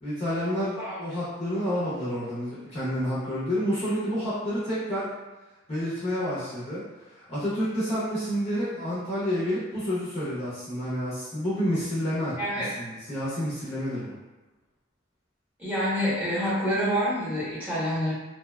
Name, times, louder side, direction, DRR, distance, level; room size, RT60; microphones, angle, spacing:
voice 1, 0.0-5.1 5.7-6.8 7.2-12.4 12.8-14.1, equal, 30° left, -10 dB, 0.6 m, -29 dB
voice 2, 12.4-12.7 15.6-18.1, equal, 10° right, -11 dB, 0.9 m, -27 dB
2.7 x 2.1 x 2.2 m, 1.1 s
head